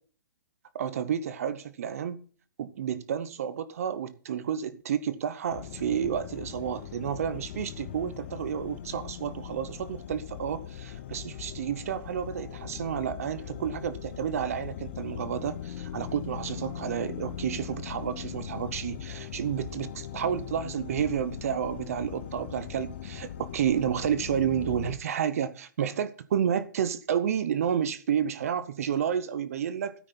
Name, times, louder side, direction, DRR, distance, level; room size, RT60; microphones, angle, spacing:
voice 1, 0.7-2.2 2.6-29.9, right 8 dB, 45° right, 0.7 m, -30 dB
sound 1, 5.5-25.0, left 10 dB, 35° left, 0.7 m, -40 dB
12.5 x 9.4 x 4.2 m
hypercardioid pair, 175°, 11 cm